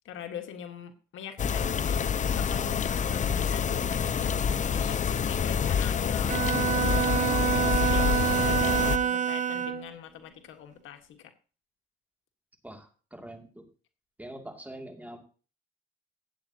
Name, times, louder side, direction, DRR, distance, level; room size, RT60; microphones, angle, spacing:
voice 1, 0.0-4.3 4.7-6.4 6.9-8.6 8.9-11.3, left 9 dB, 80° left, 6 dB, 1.6 m, -43 dB
sound 1, 1.4-9.0, left 7 dB, 40° left, 0.6 m, -27 dB
Bowed string instrument, 6.3-9.9, right 8 dB, 35° right, 1.0 m, -27 dB
voice 2, 12.6-13.6 14.2-15.2, right 1 dB, 10° right, 4 dB, 2.5 m, -44 dB
16.0 x 8.5 x 2.9 m, 0.37 s
cardioid pair, 90°, 20 cm